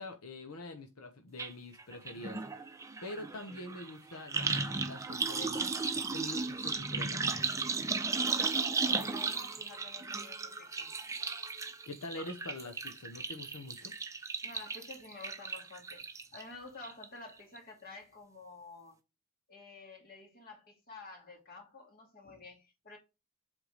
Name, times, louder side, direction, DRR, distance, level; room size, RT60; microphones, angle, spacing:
voice 1, 0.0-2.4 3.0-7.2 11.9-13.9, left 2 dB, 80° left, 1.0 m, -45 dB
sound 1, 1.4-1.5 1.8-16.4 16.8-17.3 17.6-17.7, right 4 dB, 15° right, 0.6 m, -35 dB
voice 2, 9.0-10.9 14.4-19.0 19.5-23.0, left 3 dB, 45° left, 2.8 m, -51 dB
8.0 x 3.6 x 5.0 m
head